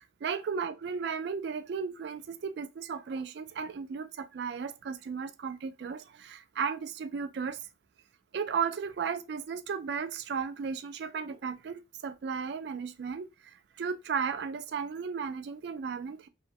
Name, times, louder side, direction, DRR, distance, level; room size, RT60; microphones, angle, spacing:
voice 1, 0.2-7.6 8.3-13.3 13.8-16.3, right 6 dB, 60° right, 0.3 m, -35 dB
2.6 x 2.0 x 2.8 m
head